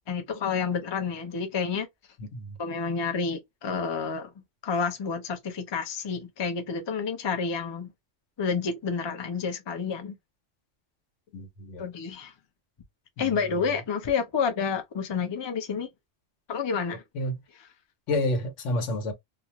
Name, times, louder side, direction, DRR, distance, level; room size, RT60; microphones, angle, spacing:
voice 1, 0.1-1.9 2.6-4.3 4.6-7.9 8.4-10.2 11.8-12.3 13.2-15.9 16.5-17.0 17.5-17.7, left 5 dB, 40° left, 0.4 m, -29 dB
voice 2, 11.3-11.8 13.2-13.3 17.1-17.3 18.1-19.1, left 1 dB, 85° left, 1.1 m, -29 dB
2.4 x 2.1 x 2.7 m
omnidirectional pair, 1.2 m